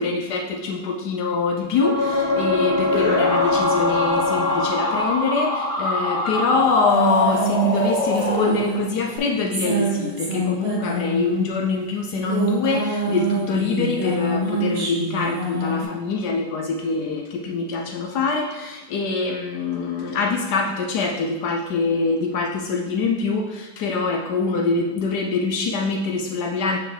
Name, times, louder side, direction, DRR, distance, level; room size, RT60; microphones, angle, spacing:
voice 1, 0.0-26.8, left 4 dB, 70° left, 1 dB, 1.1 m, -24 dB
sound 1, 1.7-5.5 9.2-9.3, left 3 dB, 90° left, 2.1 m, -23 dB
sound 2, 2.9-9.0, left 1 dB, 45° left, 1.6 m, -24 dB
sound 3, 6.5-11.6 12.1-15.8, right 3 dB, 40° right, 1.3 m, -26 dB
6.8 x 5.6 x 3.3 m, 1.2 s
omnidirectional pair, 2.0 m